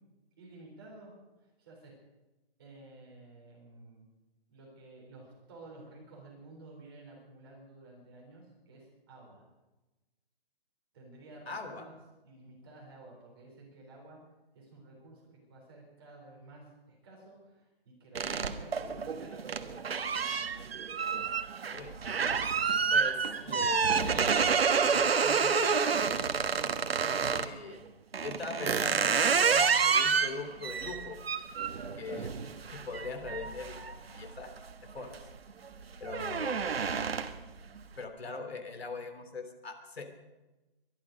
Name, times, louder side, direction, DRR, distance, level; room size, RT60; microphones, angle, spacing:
voice 1, 0.4-1.1 1.4-1.9 2.6-4.1 4.5-9.4 10.9-11.9 12.2-14.2 14.5-20.2 31.7-32.3 35.0-35.1, right 2 dB, 25° right, -2 dB, 3.9 m, -53 dB
voice 2, 11.5-11.9 21.7-21.9 22.9-26.5 27.3-27.8 28.2-31.2 32.0-32.3 32.7-33.8 34.1-34.5 34.9-35.2 36.0-36.7 38.0-40.0, left 4 dB, 75° left, 7 dB, 3.1 m, -41 dB
sound 1, 18.1-27.5 28.1-34.6 35.0-35.4 35.7-37.5, right 6 dB, 75° right, 1.3 m, -29 dB
23.0 x 11.5 x 5.1 m, 1.1 s
hypercardioid pair, 180°, 31 cm